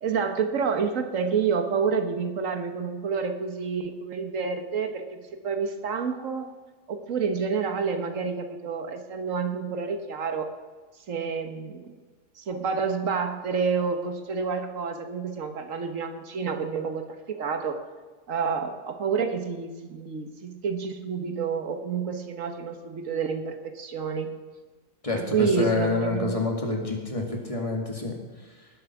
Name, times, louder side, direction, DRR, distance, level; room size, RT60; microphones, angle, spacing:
voice 1, 0.0-6.5 6.9-10.5 11.1-11.9 12.4-17.8 18.3-24.3 25.1-26.4, right 5 dB, 85° right, 7 dB, 1.6 m, -29 dB
voice 2, 25.0-28.7, left 2 dB, 25° left, 1 dB, 2.3 m, -28 dB
19.5 x 7.9 x 6.0 m, 1.3 s
omnidirectional pair, 1.3 m